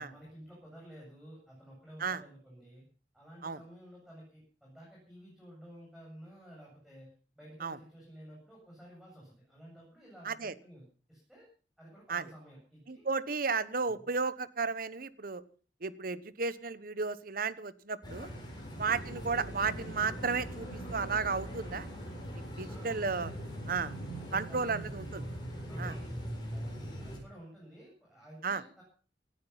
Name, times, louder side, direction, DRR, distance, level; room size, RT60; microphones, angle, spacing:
voice 1, 0.0-2.8 3.1-11.5 11.8-13.1 13.9-14.1 18.7-18.9 22.7-23.1 24.3-24.7 25.7-28.8, equal, ahead, -5 dB, 8.0 m, -53 dB
voice 2, 12.9-15.4 15.8-18.3 18.8-21.9 22.6-23.3 23.7-23.9 24.3-25.2 25.8-25.9 28.4-28.6, right 4 dB, 50° right, 16 dB, 1.0 m, -33 dB
sound 1, 18.0-27.2, equal, 25° left, 7.7 m, -41 dB
18.5 x 13.5 x 5.7 m, 0.41 s
head